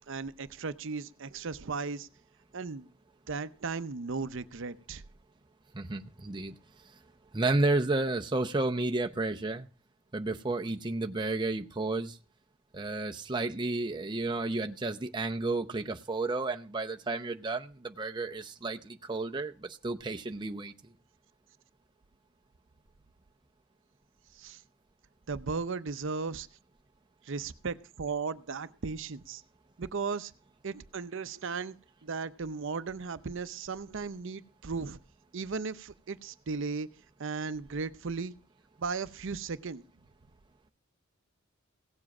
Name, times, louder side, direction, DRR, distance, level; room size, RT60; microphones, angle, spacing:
voice 1, 0.1-2.1 2.5-2.9 3.3-5.0 24.3-24.6 25.3-26.5 27.2-29.4 29.8-30.3 30.6-31.7 32.0-35.0 35.3-36.9 37.2-38.4 38.8-39.8, right 4 dB, 60° right, 13 dB, 0.6 m, -36 dB
voice 2, 5.7-6.5 7.3-9.7 10.1-12.2 12.7-20.7, right 2 dB, 20° right, 4 dB, 0.7 m, -32 dB
17.0 x 7.5 x 6.0 m, 0.37 s
head